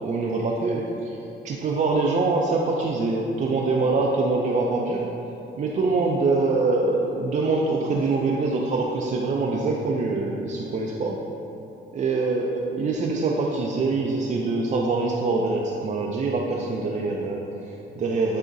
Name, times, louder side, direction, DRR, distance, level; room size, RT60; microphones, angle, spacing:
voice 1, 0.0-5.1 5.6-11.2 11.9-18.4, right 3 dB, 40° right, -2 dB, 0.4 m, -24 dB
6.2 x 2.8 x 2.5 m, 2.9 s
cardioid pair, 90°, 20 cm